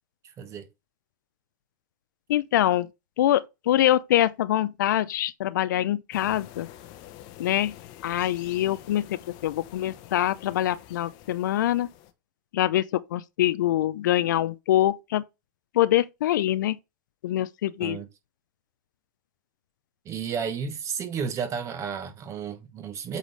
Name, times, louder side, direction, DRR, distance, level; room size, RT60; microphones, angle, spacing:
voice 1, 0.4-0.7 17.8-18.1 20.0-23.2, right 7 dB, 30° right, 1.1 m, -32 dB
voice 2, 2.3-2.9 3.2-6.7 7.4-7.8 8.0-11.9 12.5-15.2 15.7-16.8 17.2-18.0, left 13 dB, 70° left, 0.6 m, -24 dB
sound 1, 6.1-12.1, left 12 dB, 45° left, 0.9 m, -47 dB
8.2 x 3.9 x 3.2 m
hypercardioid pair, 125°, 10 cm